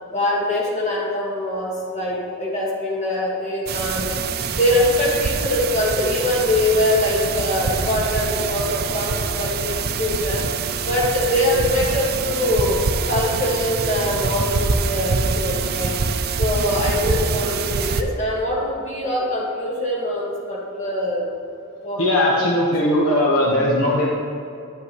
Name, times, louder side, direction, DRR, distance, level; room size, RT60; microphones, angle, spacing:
voice 1, 0.1-4.2 4.5-10.5 10.8-16.0 16.4-21.3 21.8-22.5, left 1 dB, 35° left, -3 dB, 1.8 m, -23 dB
sound 1, 3.7-18.0, right 5 dB, 50° right, 0.5 m, -25 dB
voice 2, 22.0-24.1, left 1 dB, 70° left, -4 dB, 1.1 m, -19 dB
10.5 x 8.3 x 3.1 m, 2.7 s
head